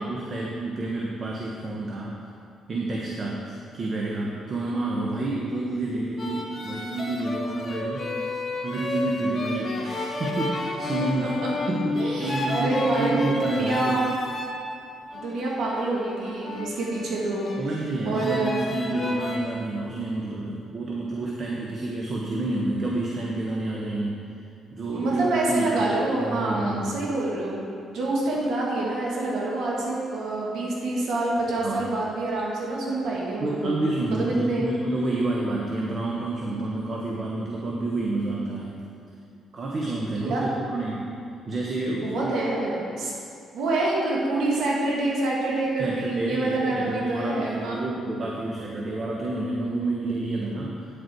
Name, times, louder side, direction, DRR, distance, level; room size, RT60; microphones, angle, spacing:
voice 1, 0.0-2.1 2.7-8.1 8.6-11.3 11.7-14.0 17.5-24.2 24.7-25.9 26.2-27.0 31.6-31.9 33.4-38.8 39.5-41.1 41.5-42.4 45.8-50.9, right 2 dB, 45° right, -2 dB, 1.2 m, -29 dB
sound 1, 6.2-14.6 15.1-17.6 18.1-19.4, left 2 dB, 35° left, 1.6 m, -32 dB
voice 2, 12.0-13.1 13.5-14.1 15.1-17.5 18.1-18.6 24.9-33.8 34.1-34.6 40.2-40.4 41.9-43.1 43.5-47.8, right 2 dB, 75° right, -4 dB, 2.2 m, -27 dB
9.6 x 8.4 x 4.6 m, 2.5 s
cardioid pair, 90°, 0 cm